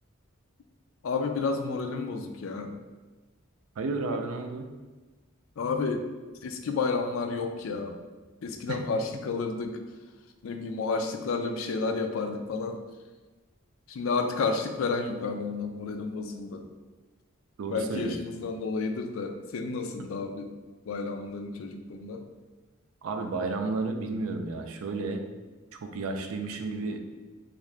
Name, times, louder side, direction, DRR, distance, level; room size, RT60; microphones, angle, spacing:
voice 1, 1.0-2.8 5.6-6.0 6.4-8.0 8.4-9.8 10.4-12.8 13.9-16.7 17.7-20.5 20.9-22.2, left 4 dB, 70° left, 5 dB, 0.4 m, -31 dB
voice 2, 3.8-4.7 8.7-8.8 17.6-18.2 20.0-20.1 23.0-25.2 25.8-27.0, right 3 dB, 80° right, 5 dB, 0.4 m, -32 dB
3.5 x 2.5 x 3.2 m, 1.3 s
head